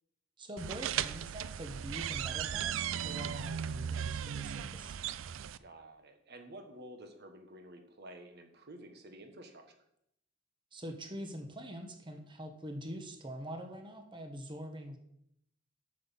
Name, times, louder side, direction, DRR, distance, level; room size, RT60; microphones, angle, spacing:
voice 1, 0.4-5.0 10.7-15.0, equal, 25° right, 5 dB, 1.1 m, -44 dB
sound 1, 0.6-5.6, right 9 dB, 75° right, 0.4 m, -37 dB
voice 2, 5.6-9.8, right 1 dB, 55° right, 5 dB, 1.4 m, -51 dB
7.9 x 7.3 x 5.6 m, 0.77 s
head